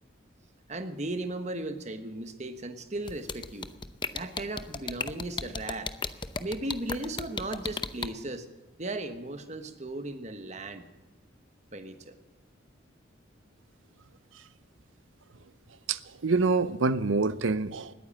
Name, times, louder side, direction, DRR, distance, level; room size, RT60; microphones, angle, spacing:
voice 1, 0.7-3.7 4.1-5.9 6.4-8.5 8.8-10.9 11.7-12.2, right 2 dB, 35° right, 1.3 m, -36 dB
sound 1, 3.1-8.1, left 4 dB, 25° left, 0.6 m, -33 dB
voice 2, 15.9-17.9, right 3 dB, 90° right, 0.7 m, -26 dB
20.0 x 9.5 x 7.6 m
head